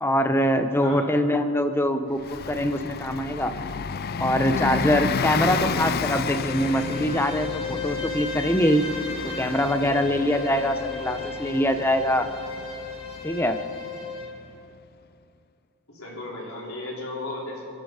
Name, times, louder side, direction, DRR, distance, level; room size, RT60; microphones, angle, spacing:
voice 1, 0.0-3.5 4.2-8.8 9.2-12.3 13.2-13.6, equal, 10° left, 8 dB, 0.8 m, -23 dB
voice 2, 0.8-1.1 15.9-17.6, left 2 dB, 80° left, -4 dB, 4.7 m, -35 dB
Bus, 2.2-14.5, left 5 dB, 45° left, 0.4 m, -32 dB
Bowed string instrument, 6.0-14.4, left 5 dB, 25° left, 2.0 m, -35 dB
27.0 x 11.0 x 4.9 m, 2.6 s
head